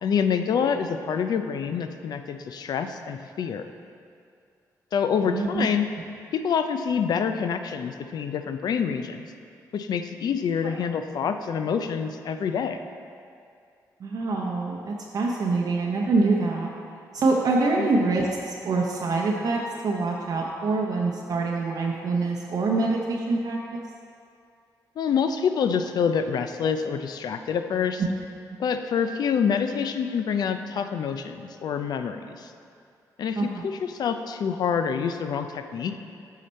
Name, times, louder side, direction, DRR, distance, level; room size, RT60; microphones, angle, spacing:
voice 1, 0.0-3.7 4.9-5.9 6.3-9.3 9.7-12.8 17.8-17.9 25.0-28.0 28.6-32.5 33.2-35.9, left 7 dB, 65° left, 8 dB, 0.5 m, -26 dB
voice 2, 5.2-5.7 10.6-10.8 14.0-16.7 17.1-23.9 28.0-28.1 28.5-28.6 33.4-33.6, right 3 dB, 60° right, -1 dB, 0.7 m, -25 dB
8.4 x 5.8 x 4.3 m, 2.4 s
cardioid pair, 85°, 7 cm